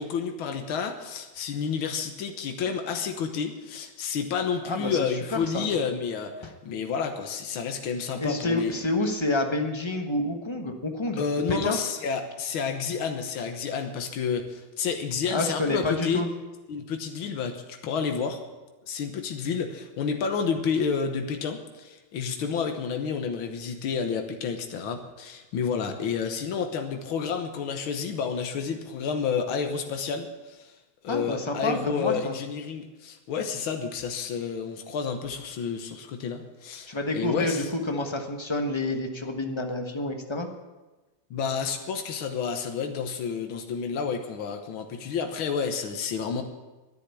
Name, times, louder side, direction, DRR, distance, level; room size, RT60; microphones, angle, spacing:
voice 1, 0.0-8.7 11.2-16.2 16.7-18.4 18.8-30.7 31.0-37.7 41.3-46.4, left 6 dB, 80° left, 5 dB, 1.9 m, -30 dB
voice 2, 4.6-5.0 5.3-5.7 6.4-6.5 8.2-11.2 11.5-11.8 15.3-16.3 31.1-32.4 36.9-40.5, left 2 dB, 20° left, 4 dB, 1.0 m, -28 dB
11.5 x 10.0 x 8.2 m, 1.1 s
omnidirectional pair, 2.2 m